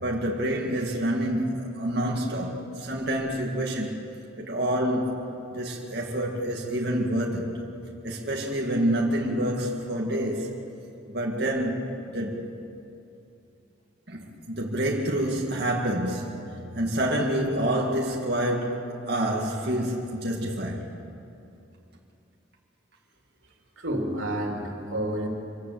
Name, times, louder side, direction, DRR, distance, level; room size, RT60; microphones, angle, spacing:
voice 1, 0.0-4.0 4.4-5.2 5.5-7.5 8.0-10.5 11.1-11.8 12.1-12.4 14.1-20.8, right 1 dB, 55° right, 2.3 m, -27 dB
voice 2, 23.8-25.3, right 1 dB, 85° right, 3.2 m, -29 dB
25.5 x 18.5 x 7.9 m
head